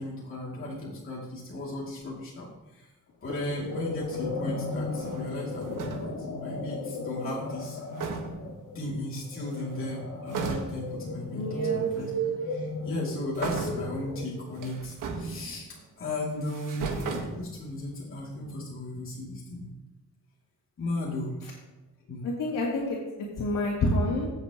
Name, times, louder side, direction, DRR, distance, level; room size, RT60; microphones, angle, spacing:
voice 1, 0.0-2.9 3.2-7.8 8.7-15.7 16.0-19.7 20.8-21.4 22.1-22.3, left 1 dB, 40° left, -5 dB, 2.5 m, -36 dB
sound 1, 3.3-14.6, equal, 70° left, 1.8 m, -35 dB
sound 2, 3.3-4.5 4.8-6.3 7.6-7.7 7.9-8.6 9.4-9.9 10.3-11.0 12.0-12.1 13.3-14.0 14.5-15.8 16.3-17.9, right 4 dB, 80° right, 1.5 m, -37 dB
voice 2, 11.4-11.9 17.0-17.2 22.2-23.0 23.4-24.3, left 2 dB, 85° left, -6 dB, 2.3 m, -28 dB
16.0 x 7.2 x 2.9 m, 1.0 s
wide cardioid pair, 145°, 32 cm